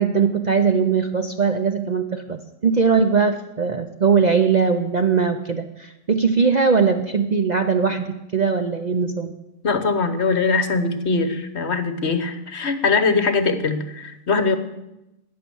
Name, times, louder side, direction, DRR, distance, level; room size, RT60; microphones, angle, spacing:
voice 1, 0.0-9.4, right 5 dB, 40° right, 7 dB, 0.6 m, -20 dB
voice 2, 9.6-14.6, left 4 dB, 55° left, 10 dB, 1.3 m, -21 dB
14.5 x 9.6 x 7.0 m, 0.93 s
omnidirectional pair, 1.4 m